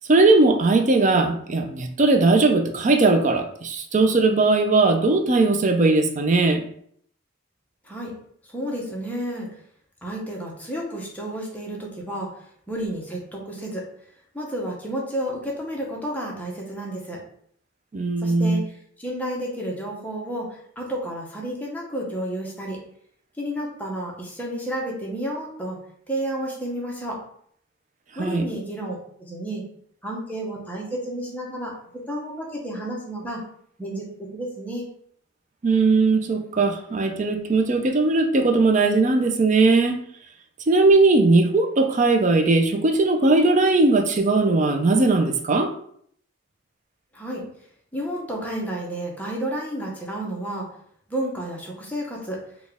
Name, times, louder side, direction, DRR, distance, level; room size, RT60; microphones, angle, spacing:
voice 1, 0.1-6.6 17.9-18.6 28.2-28.4 35.6-40.0 40.7-45.7, right 3 dB, 35° right, 5 dB, 0.4 m, -19 dB
voice 2, 8.5-9.5 10.0-12.3 12.7-13.8 14.3-17.2 18.2-22.8 23.4-25.8 26.1-27.2 28.2-29.6 30.0-31.7 32.1-33.4 33.8-34.9 47.1-47.4 47.9-50.7 51.1-52.4, right 1 dB, 10° left, -2 dB, 0.8 m, -31 dB
4.1 x 2.3 x 3.4 m, 0.65 s
head